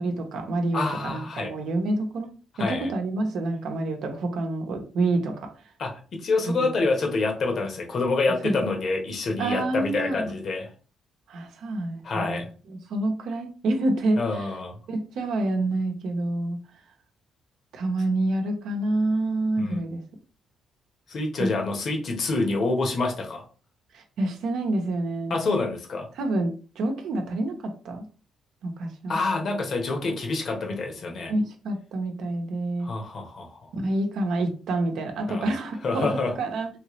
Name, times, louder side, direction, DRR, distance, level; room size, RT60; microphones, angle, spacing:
voice 1, 0.0-2.3 2.6-5.5 6.5-6.6 8.4-8.6 9.4-10.3 11.3-12.4 12.9-14.5 14.9-16.6 17.7-20.0 21.4-21.5 23.9-25.4 26.1-28.0 28.6-29.2 31.3-32.9 33.7-36.1 36.4-36.7, right 2 dB, 75° right, 4 dB, 0.7 m, -27 dB
voice 2, 0.7-1.5 2.6-2.9 5.8-5.9 6.2-10.7 12.0-12.5 14.2-14.7 19.6-19.8 21.1-23.4 25.3-26.1 29.1-31.3 32.8-33.7 35.3-35.5 35.8-36.3, left 3 dB, 55° left, 2 dB, 1.1 m, -27 dB
3.2 x 2.9 x 3.0 m, 0.37 s
cardioid pair, 90°, 0 cm